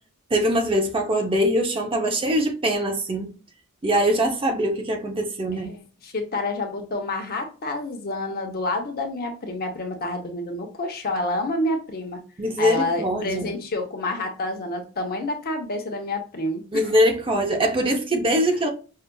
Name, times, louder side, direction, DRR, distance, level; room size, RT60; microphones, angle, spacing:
voice 1, 0.3-3.3 3.8-5.7 12.4-13.6 16.7-18.7, equal, 25° right, 0.6 m, -22 dB
voice 2, 5.5-12.2 12.6-16.9, left 2 dB, 45° left, 0.8 m, -28 dB
5.5 x 2.4 x 2.2 m
head